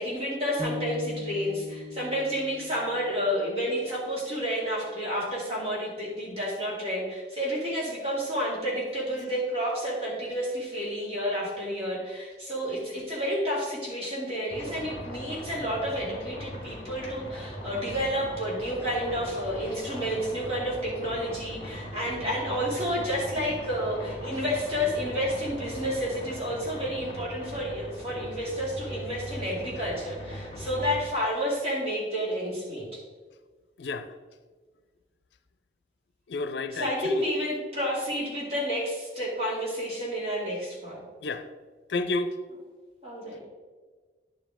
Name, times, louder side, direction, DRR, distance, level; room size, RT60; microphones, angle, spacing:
voice 1, 0.0-33.0 36.7-41.0 43.0-43.4, equal, 35° right, 2.5 m, -30 dB
sound 1, 0.6-4.7, left 2 dB, 5° right, 0.9 m, -40 dB
sound 2, 14.5-31.0, equal, 35° left, 1.9 m, -40 dB
voice 2, 36.3-37.2 41.2-41.5 41.9-42.3, left 3 dB, 85° left, 0.5 m, -30 dB
10.5 x 5.1 x 3.6 m
head